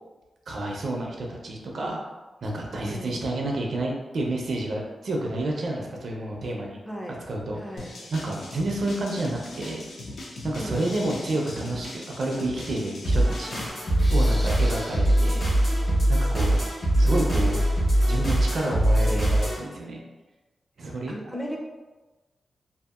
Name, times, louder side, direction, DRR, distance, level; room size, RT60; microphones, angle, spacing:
voice 1, 0.5-2.0 2.4-6.8 7.3-7.8 8.1-9.9 10.4-13.5 14.1-15.4 16.1-16.6 17.0-17.6 18.1-20.0 20.8-21.2, right 1 dB, 60° right, 0 dB, 0.4 m, -29 dB
voice 2, 2.8-3.2 6.9-7.2 7.6-7.9 10.5-10.9 21.1-21.6, equal, 10° left, -1 dB, 0.4 m, -36 dB
sound 1, 7.8-13.7, left 2 dB, 80° left, 0.5 m, -39 dB
sound 2, 13.0-19.6, right 1 dB, 60° left, 1.2 m, -22 dB
2.7 x 2.4 x 2.3 m, 1.2 s
wide cardioid pair, 145°, 0 cm